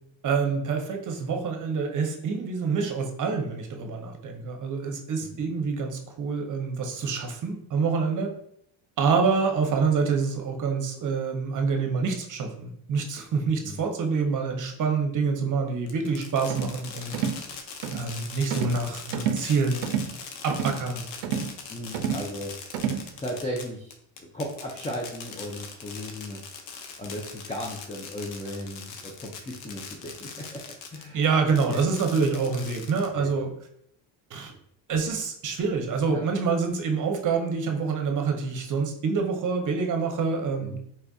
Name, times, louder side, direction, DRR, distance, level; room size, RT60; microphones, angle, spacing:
voice 1, 0.2-8.3 9.0-17.1 17.9-19.8 20.4-21.1 31.1-33.5 34.3-34.5 34.9-40.8, right 5 dB, 40° right, 3 dB, 0.8 m, -26 dB
Fireworks, 15.9-31.1 31.5-33.3, left 6 dB, 85° left, 0.7 m, -41 dB
sound 1, 16.5-16.8 17.1-17.4 17.8-18.1 18.5-18.8 19.1-19.5 19.8-20.1 20.5-20.8 21.2-21.6 21.9-22.3 22.7-23.1, right 7 dB, 85° right, 0.5 m, -29 dB
voice 2, 21.7-22.5 23.2-23.9 24.3-26.4 27.0-30.6 30.9-31.2 31.7-31.8 33.1-33.3 36.1-36.2 40.6-40.8, equal, 15° left, -2 dB, 0.6 m, -36 dB
4.3 x 2.5 x 2.3 m, 0.70 s
supercardioid pair, 75°, 47 cm